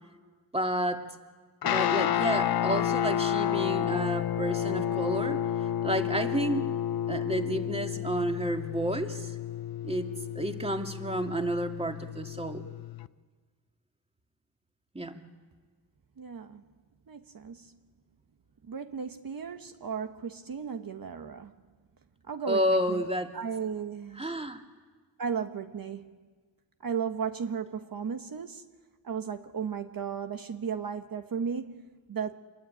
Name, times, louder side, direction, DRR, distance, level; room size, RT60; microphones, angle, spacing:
voice 1, 0.5-1.1 1.6-5.4 5.8-6.7 7.1-9.3 9.8-12.7 14.9-15.1 22.5-23.3 24.2-24.6, right 1 dB, 15° right, 2.6 m, -31 dB
Guitar, 1.6-13.1, left 10 dB, 65° left, 0.7 m, -30 dB
voice 2, 16.2-16.6 17.1-17.7 18.6-21.5 22.3-23.0 23.3-24.3 25.2-26.2 26.8-28.7 29.0-32.3, right 6 dB, 60° right, 1.4 m, -35 dB
27.0 x 22.0 x 9.1 m
cardioid pair, 70°, 40 cm